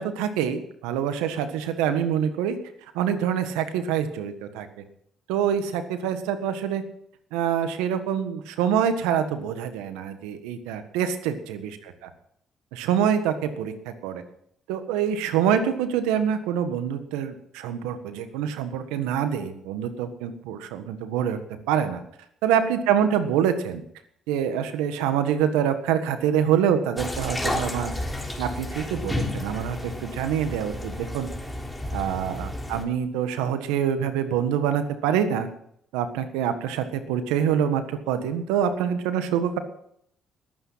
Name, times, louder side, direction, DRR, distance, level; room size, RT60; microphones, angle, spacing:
voice 1, 0.0-2.6 2.9-4.7 5.3-6.8 7.3-11.7 12.7-14.2 14.7-21.4 21.7-22.0 22.4-23.8 24.3-27.9 28.4-31.3 31.9-35.5 35.9-39.6, right 8 dB, 90° right, 9 dB, 1.5 m, -25 dB
sound 1, 27.0-32.8, left 1 dB, 10° left, 3.7 m, -31 dB
20.5 x 9.1 x 5.7 m, 0.70 s
supercardioid pair, 70°, 0 cm